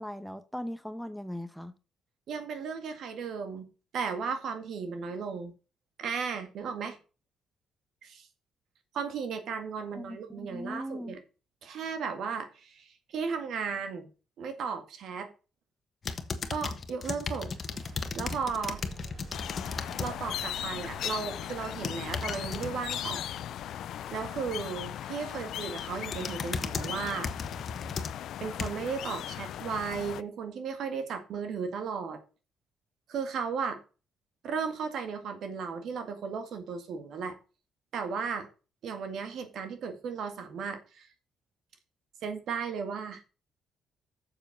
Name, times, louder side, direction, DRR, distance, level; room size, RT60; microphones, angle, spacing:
voice 1, 0.0-1.7 9.9-11.1, equal, ahead, 0.9 m, -39 dB
voice 2, 2.3-3.7 3.9-5.5 6.0-7.0 8.0-8.3 8.9-11.2 11.6-14.1 14.4-15.3 16.5-17.6 18.2-18.8 20.0-23.3 24.1-27.3 28.4-32.2 33.1-33.8 34.4-37.4 37.9-38.5 38.8-41.1 42.2-43.2, right 5 dB, 70° right, 2.1 m, -35 dB
sound 1, 16.0-20.1 20.5-20.9 21.6-22.7 25.1-25.4 25.8-28.9 29.5-29.6, left 4 dB, 45° left, 1.3 m, -36 dB
sound 2, 17.5-27.2, right 5 dB, 55° right, 5.2 m, -52 dB
sound 3, 19.3-30.2, left 11 dB, 75° left, 0.4 m, -38 dB
7.4 x 6.9 x 6.6 m
cardioid pair, 85°, 0 cm